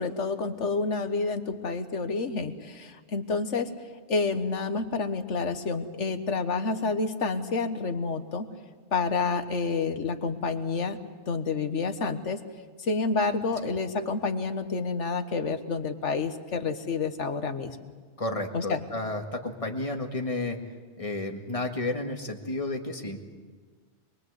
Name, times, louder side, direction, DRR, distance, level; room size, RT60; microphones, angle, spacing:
voice 1, 0.0-3.7 4.1-8.5 8.9-11.0 11.3-12.4 12.8-17.9 18.5-18.8, left 4 dB, 80° left, 9 dB, 1.7 m, -29 dB
voice 2, 18.2-20.6 21.0-23.2, left 2 dB, 30° left, 3 dB, 2.0 m, -32 dB
25.0 x 22.5 x 8.2 m, 1.5 s
omnidirectional pair, 1.2 m